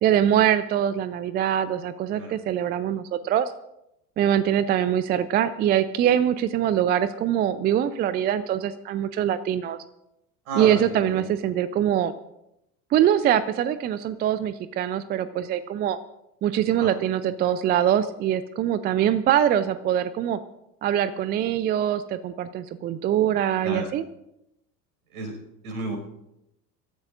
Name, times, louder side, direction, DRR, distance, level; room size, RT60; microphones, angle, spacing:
voice 1, 0.0-3.5 4.2-9.8 10.5-12.1 12.9-16.0 16.4-20.4 20.8-24.1, right 10 dB, 20° right, 14 dB, 0.5 m, -23 dB
voice 2, 10.5-11.3 16.8-16.9 23.6-23.9 25.1-25.3 25.6-26.0, right 3 dB, 60° right, 3 dB, 5.6 m, -31 dB
25.0 x 13.5 x 2.5 m, 0.85 s
figure-of-eight pair, 75°, 49 cm